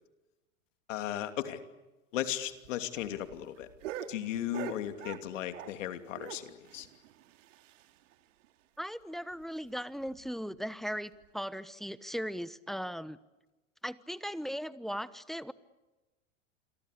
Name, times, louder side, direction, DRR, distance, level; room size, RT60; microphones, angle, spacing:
voice 1, 0.9-1.6 2.1-3.7 4.1-6.9, left 11 dB, 75° left, 8 dB, 2.9 m, -36 dB
sound 1, 2.4-5.9 6.2-8.1 8.4-8.5 8.8-8.9 9.3-9.4 10.0-10.3 11.1-11.3, right 11 dB, 75° right, 2.7 m, -45 dB
voice 2, 8.8-13.2 13.8-15.5, equal, ahead, 15 dB, 1.0 m, -38 dB
28.5 x 23.0 x 8.3 m, 1.1 s
hypercardioid pair, 110°, 38 cm